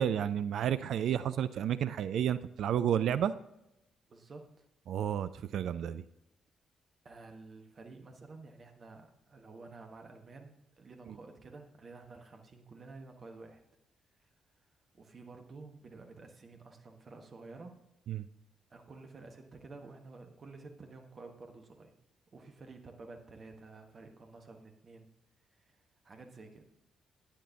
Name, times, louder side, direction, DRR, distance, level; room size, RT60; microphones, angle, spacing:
voice 1, 0.0-3.3 4.9-6.0 18.1-18.3, right 9 dB, 55° right, 13 dB, 0.3 m, -31 dB
voice 2, 4.1-4.6 7.0-13.6 14.9-17.8 18.7-21.9 22.3-25.1 25.5-25.8 26.0-26.7, right 3 dB, 40° right, 4 dB, 1.3 m, -51 dB
11.5 x 9.1 x 2.8 m, 0.87 s
figure-of-eight pair, 40°, 0 cm